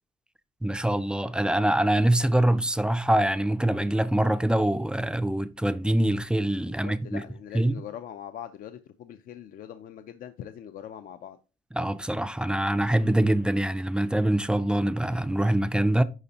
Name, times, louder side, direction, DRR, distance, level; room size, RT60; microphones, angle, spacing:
voice 1, 0.6-7.2 7.5-7.8 11.7-16.0, right 1 dB, 5° right, 0.4 m, -24 dB
voice 2, 6.7-11.4, left 10 dB, 55° left, 0.5 m, -42 dB
10.5 x 4.0 x 2.9 m
cardioid pair, 110°, 17 cm